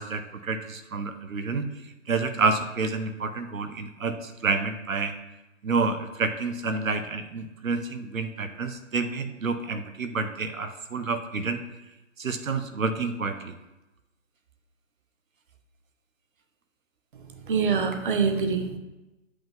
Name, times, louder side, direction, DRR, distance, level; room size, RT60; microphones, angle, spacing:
voice 1, 0.0-1.6 2.1-5.1 5.6-11.6 12.2-13.5, right 4 dB, 85° right, 8 dB, 1.0 m, -29 dB
voice 2, 17.5-18.8, right 5 dB, 40° right, 6 dB, 0.9 m, -24 dB
8.6 x 5.7 x 3.7 m, 1.0 s
hypercardioid pair, 155°, 40 cm